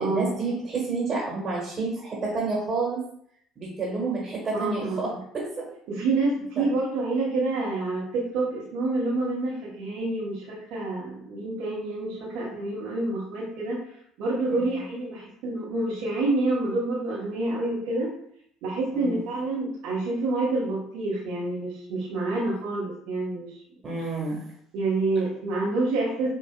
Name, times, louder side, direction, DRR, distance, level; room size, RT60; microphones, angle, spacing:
voice 1, 0.0-3.0 3.6-5.7 6.6-6.7 14.5-14.8 18.9-19.2 23.8-24.4, right 3 dB, 40° right, -3 dB, 1.4 m, -29 dB
voice 2, 4.5-5.2 5.9-13.8 14.2-18.1 18.6-23.6 24.7-26.3, right 2 dB, 70° right, -7 dB, 1.0 m, -28 dB
5.5 x 2.5 x 2.3 m, 0.68 s
hypercardioid pair, 65°, 0 cm